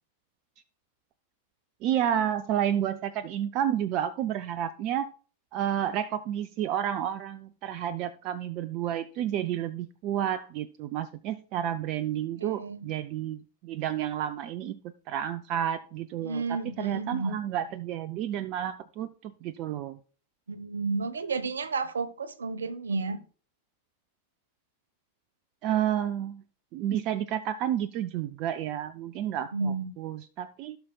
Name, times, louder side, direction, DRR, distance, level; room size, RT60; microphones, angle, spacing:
voice 1, 1.8-5.1 5.5-20.0 25.6-26.4 26.7-30.8, right 10 dB, 40° right, 0.4 m, -31 dB
voice 2, 12.4-12.8 16.2-17.4 20.5-23.2 29.5-29.9, right 4 dB, 70° right, 0.7 m, -32 dB
16.0 x 5.8 x 2.3 m
figure-of-eight pair, 90°, 0 cm